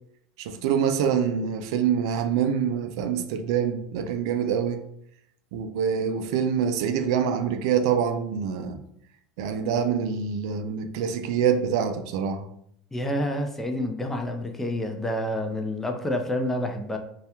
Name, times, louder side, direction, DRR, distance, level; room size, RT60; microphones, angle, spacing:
voice 1, 0.4-4.8 5.5-8.8 9.4-12.4, right 7 dB, 75° right, 0.3 m, -25 dB
voice 2, 12.9-17.0, left 1 dB, 10° left, 0.4 m, -28 dB
2.3 x 2.1 x 2.9 m
supercardioid pair, 105°, 3 cm